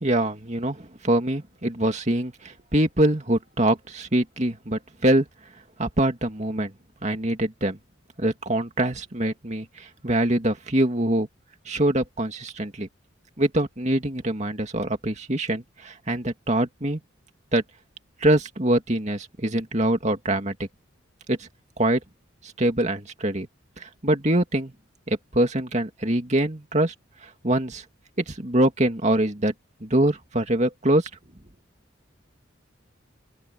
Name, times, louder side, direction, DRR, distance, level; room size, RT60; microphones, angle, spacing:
voice 1, 0.0-5.3 5.8-6.7 7.0-7.8 8.2-11.3 11.7-12.9 13.4-17.0 17.5-17.6 18.2-20.7 21.3-21.5 21.8-22.0 22.6-23.5 23.8-24.7 25.1-26.9 27.4-27.8 28.3-29.5 29.8-31.1, right 1 dB, 35° right, 2.4 m, -24 dB
open air
head